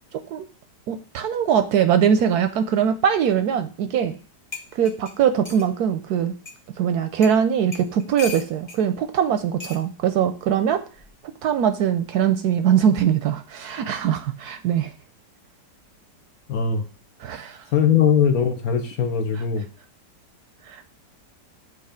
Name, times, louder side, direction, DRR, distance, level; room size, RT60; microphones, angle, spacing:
voice 1, 0.9-4.2 4.7-6.3 6.8-10.8 11.4-14.9 17.2-17.6 19.3-19.4 20.7-20.8, right 8 dB, 70° right, 8 dB, 1.0 m, -21 dB
sound 1, 4.1-4.2 4.5-5.7 6.5-6.6 7.2-7.4 7.7-8.8 9.6-9.8 10.9-11.2, left 4 dB, 25° left, 1.0 m, -37 dB
voice 2, 16.5-16.8 17.7-19.7, left 7 dB, 60° left, 6 dB, 1.1 m, -20 dB
7.9 x 2.8 x 5.0 m, 0.36 s
omnidirectional pair, 1.9 m